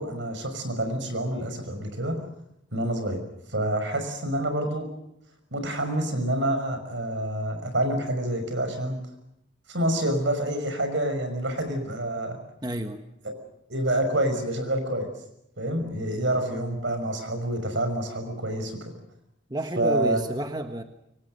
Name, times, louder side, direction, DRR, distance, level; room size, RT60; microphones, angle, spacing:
voice 1, 0.0-2.2 2.7-3.2 3.5-4.9 5.5-9.0 9.7-12.4 13.2-13.4 13.7-15.1 15.6-18.8 19.8-20.2, right 1 dB, 75° right, 7 dB, 6.1 m, -27 dB
voice 2, 12.6-13.0 16.1-16.2 19.5-20.8, right 1 dB, 20° right, 6 dB, 1.4 m, -30 dB
26.0 x 24.0 x 6.7 m, 0.81 s
head